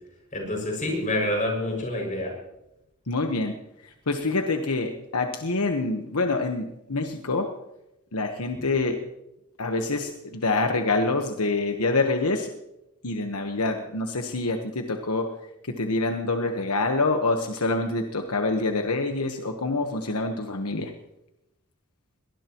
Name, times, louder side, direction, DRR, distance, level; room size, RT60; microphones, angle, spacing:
voice 1, 0.3-2.3, left 1 dB, 35° left, 1 dB, 6.4 m, -27 dB
voice 2, 3.1-3.5 3.8-7.5 8.1-9.0 9.6-12.5 13.0-15.3 15.7-20.9, left 3 dB, 80° left, 4 dB, 1.3 m, -26 dB
22.0 x 19.5 x 3.1 m, 0.89 s
head